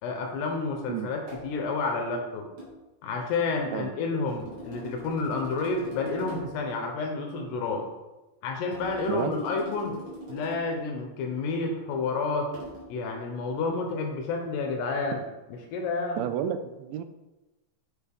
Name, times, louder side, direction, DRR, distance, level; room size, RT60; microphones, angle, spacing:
voice 1, 0.0-2.5 3.0-7.9 8.4-10.0 10.3-12.5 12.9-16.2, left 3 dB, 75° left, 3 dB, 2.8 m, -30 dB
sound 1, 1.3-1.5 2.6-2.8 4.3-6.6 8.7-10.8 12.5-12.8, equal, 35° right, 1.8 m, -42 dB
voice 2, 16.2-17.0, right 9 dB, 85° right, 10 dB, 2.8 m, -30 dB
7.1 x 7.1 x 3.5 m, 1.1 s
omnidirectional pair, 5.3 m